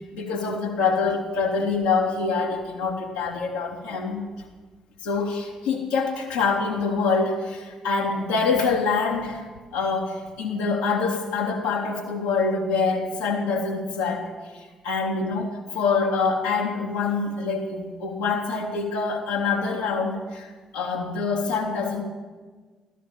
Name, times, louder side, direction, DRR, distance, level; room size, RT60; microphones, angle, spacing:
voice 1, 0.1-4.2 5.0-9.5 9.7-20.5 20.7-22.0, left 4 dB, 70° left, -1 dB, 2.9 m, -25 dB
15.0 x 14.0 x 7.0 m, 1.3 s
figure-of-eight pair, 40°, 3 cm